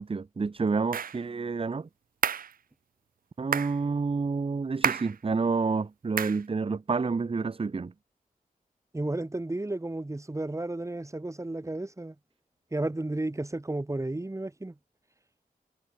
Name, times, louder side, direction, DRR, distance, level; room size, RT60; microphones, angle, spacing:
voice 1, 0.0-1.9 3.4-7.9, right 4 dB, 40° right, 1.0 m, -29 dB
sound 1, 0.9-1.2 2.2-2.5 3.5-3.8 4.8-5.1 6.2-6.4, right 7 dB, 70° right, 0.7 m, -29 dB
voice 2, 8.9-12.1 12.7-14.7, right 2 dB, 20° right, 6.5 m, -33 dB
wide cardioid pair, 85°, 15 cm